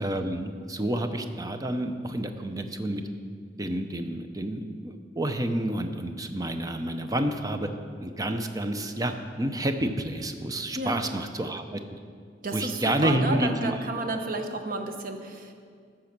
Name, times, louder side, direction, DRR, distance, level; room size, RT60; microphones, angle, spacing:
voice 1, 0.0-3.0 3.6-7.7 8.0-11.8 12.5-13.8, right 1 dB, 20° right, 7 dB, 0.7 m, -29 dB
voice 2, 10.7-11.1 12.4-15.5, right 2 dB, 50° right, 5 dB, 1.0 m, -31 dB
13.5 x 7.0 x 6.0 m, 2.1 s
head